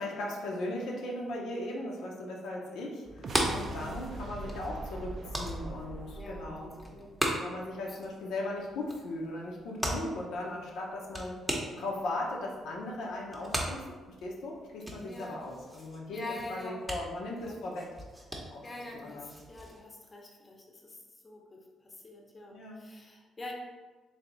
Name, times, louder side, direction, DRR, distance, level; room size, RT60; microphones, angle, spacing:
voice 1, 0.0-6.8 7.4-11.4 11.7-16.2 16.5-17.9 18.4-18.7 18.9-19.3 22.5-22.9, left 1 dB, 85° left, -2 dB, 0.7 m, -38 dB
sound 1, 3.0-19.8, right 1 dB, 10° right, 0.8 m, -39 dB
sound 2, 3.1-7.6, right 2 dB, 55° right, 0.3 m, -42 dB
voice 2, 3.8-4.2 6.1-7.2 7.7-8.3 15.0-15.5 16.1-16.8 17.4-17.6 18.6-23.5, left 2 dB, 25° left, 0 dB, 0.7 m, -46 dB
3.4 x 2.7 x 3.9 m, 1.3 s
cardioid pair, 90°, 0 cm